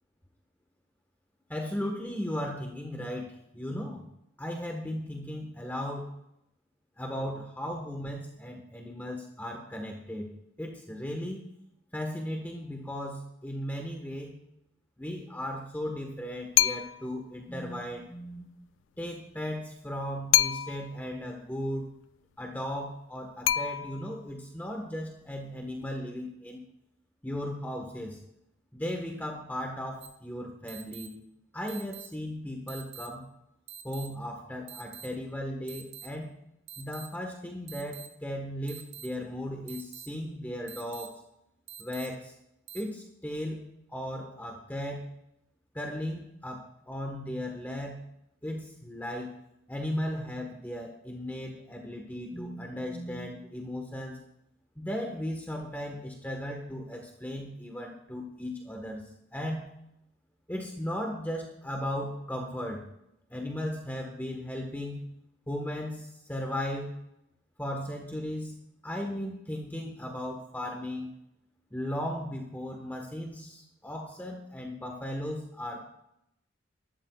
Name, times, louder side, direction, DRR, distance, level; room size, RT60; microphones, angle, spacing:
voice 1, 1.5-4.0 4.4-6.2 7.0-10.3 10.6-11.5 11.9-14.3 15.0-18.5 19.0-21.8 22.4-26.6 27.2-28.2 28.7-31.2 31.5-33.3 33.8-36.3 36.8-41.2 41.8-42.3 42.7-43.6 43.9-45.1 45.7-48.1 48.4-49.3 49.7-54.2 54.8-59.0 59.3-59.6 60.5-62.8 63.3-65.0 65.5-66.9 67.6-68.5 68.8-71.1 71.7-75.8, equal, 10° left, 1 dB, 1.5 m, -36 dB
sound 1, 16.6-17.2 20.3-21.0 23.5-24.3, left 13 dB, 80° left, 0.3 m, -26 dB
sound 2, 30.0-30.1 30.7-31.1 31.7-32.1 32.7-33.1 33.7-34.1 34.7-35.1 35.7-36.1 36.7-37.1 37.7-38.1 38.7-39.1 39.7-40.1 40.7-41.1 41.7-42.1 42.7-42.8, right 9 dB, 85° right, 2.8 m, -45 dB
22.0 x 12.5 x 2.4 m, 0.81 s
head